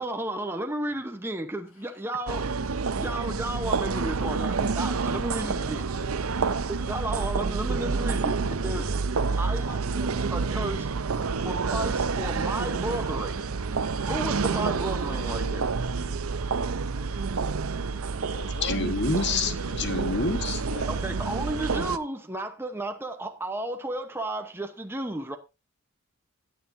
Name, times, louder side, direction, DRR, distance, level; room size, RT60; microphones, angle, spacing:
voice 1, 0.0-2.5 2.9-5.9 6.7-8.9 9.4-10.9 11.4-13.4 14.1-15.7 20.9-25.4, right 1 dB, 10° right, 0.9 m, -33 dB
sound 1, 2.3-22.0, right 4 dB, 85° right, 0.7 m, -28 dB
voice 2, 5.4-6.6 18.3-18.9 19.4-20.0 20.6-20.9, left 2 dB, 70° left, 3.9 m, -42 dB
voice 3, 18.6-20.6, left 3 dB, 55° left, 1.6 m, -28 dB
16.0 x 9.2 x 2.7 m
head